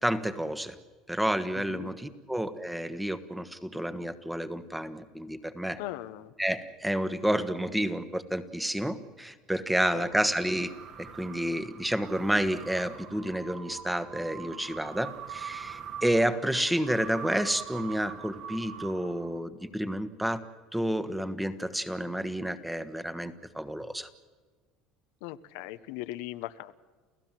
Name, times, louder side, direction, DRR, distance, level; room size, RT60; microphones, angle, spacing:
voice 1, 0.0-0.8 1.1-5.8 6.4-10.7 11.0-20.4 20.7-24.1, right 1 dB, 5° right, 12 dB, 1.3 m, -30 dB
voice 2, 1.5-1.9 5.8-6.3 9.9-10.1 25.2-26.7, left 15 dB, 75° left, 11 dB, 0.9 m, -39 dB
sound 1, 9.9-19.6, right 8 dB, 55° right, 2.5 m, -44 dB
29.5 x 15.5 x 7.6 m, 1.4 s
supercardioid pair, 120°, 0 cm